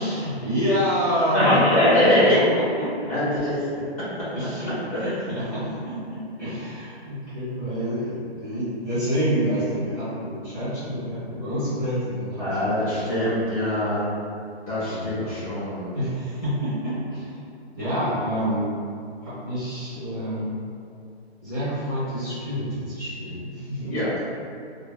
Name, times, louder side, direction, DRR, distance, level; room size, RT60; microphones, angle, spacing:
voice 1, 0.0-1.6 2.0-2.4 2.8-3.1 4.3-12.6 12.9-13.3 14.8-15.3 15.9-17.2 17.8-18.7 19.2-20.5 21.4-24.0, equal, ahead, -16 dB, 1.2 m, -28 dB
voice 2, 1.3-2.4 3.1-3.5 4.9-5.1 12.4-14.1 14.7-15.9 23.8-24.1, left 1 dB, 35° left, -11 dB, 1.1 m, -22 dB
3.2 x 2.1 x 2.2 m, 2.4 s
hypercardioid pair, 170°, 32 cm